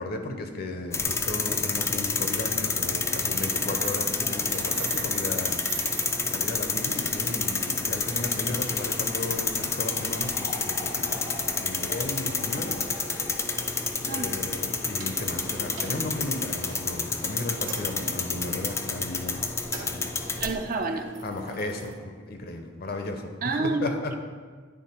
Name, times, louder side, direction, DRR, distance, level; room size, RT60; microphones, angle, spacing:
voice 1, 0.0-5.6 6.3-11.2 11.6-12.9 14.0-19.5 19.8-20.5 21.2-24.1, left 2 dB, 55° left, 5 dB, 0.7 m, -35 dB
sound 1, 0.9-20.5, left 4 dB, 15° left, 0.3 m, -29 dB
sound 2, 3.1-21.9, right 4 dB, 85° right, 1.1 m, -42 dB
sound 3, 6.2-19.4 19.7-19.8, left 2 dB, 90° left, 1.2 m, -45 dB
voice 2, 20.4-21.1 23.4-24.1, right 3 dB, 50° right, 7 dB, 0.4 m, -29 dB
9.7 x 3.4 x 4.3 m, 1.5 s
head